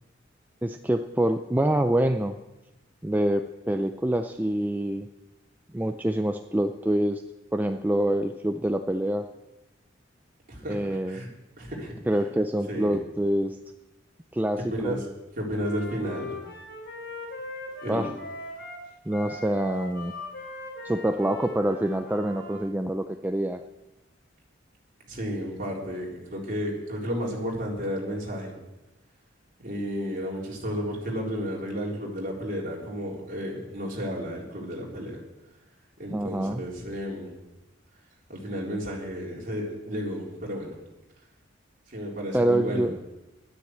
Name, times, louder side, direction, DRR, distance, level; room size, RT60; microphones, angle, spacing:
voice 1, 0.6-2.4 3.0-5.1 5.7-7.2 7.5-9.3 10.7-11.2 12.1-13.6 14.3-15.0 17.9-18.1 19.1-20.1 20.8-23.6 36.1-36.6 42.3-42.9, right 1 dB, 10° right, 6 dB, 0.4 m, -26 dB
voice 2, 11.6-11.9 12.7-13.0 14.7-15.0 15.4-16.3 17.8-18.1 25.1-28.6 29.6-35.2 36.0-37.3 38.3-40.8 41.9-42.9, equal, 45° right, -3 dB, 3.8 m, -32 dB
Wind instrument woodwind instrument, 15.6-22.6, left 2 dB, 60° left, 3.4 m, -40 dB
12.0 x 10.0 x 7.8 m, 1.0 s
head